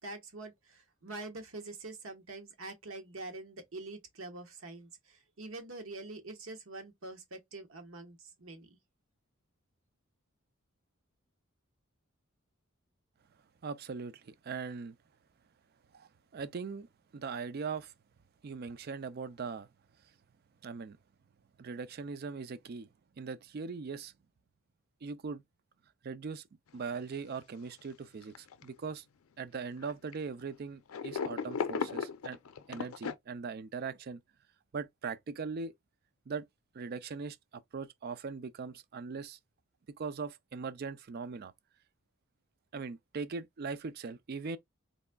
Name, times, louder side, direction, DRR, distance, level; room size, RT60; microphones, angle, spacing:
voice 1, 0.0-8.8, right 2 dB, 70° right, 1.1 m, -45 dB
voice 2, 13.6-15.0 15.9-16.9 17.1-17.9 18.4-19.7 20.6-21.0 21.6-22.9 23.2-24.1 25.0-25.4 26.0-26.4 26.7-29.0 29.4-32.4 32.7-34.2 34.7-35.7 36.3-36.5 36.7-39.4 40.0-41.5 42.7-44.6, right 5 dB, 50° right, 0.4 m, -40 dB
sound 1, 26.9-27.0 27.3-27.4 28.2-28.9 29.8-30.1 30.9-33.1, left 5 dB, 90° left, 0.5 m, -36 dB
4.1 x 3.4 x 2.2 m
head